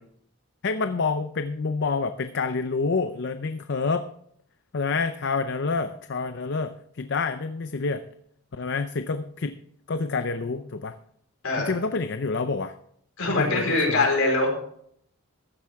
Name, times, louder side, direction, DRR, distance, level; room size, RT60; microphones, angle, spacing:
voice 1, 0.6-4.1 4.7-8.1 8.5-9.6 9.9-10.9 11.6-12.7 13.3-14.1, left 4 dB, 50° left, 9 dB, 0.5 m, -28 dB
voice 2, 11.4-11.8 13.2-14.5, left 2 dB, 70° left, 0 dB, 4.6 m, -23 dB
15.0 x 12.0 x 3.5 m, 0.68 s
head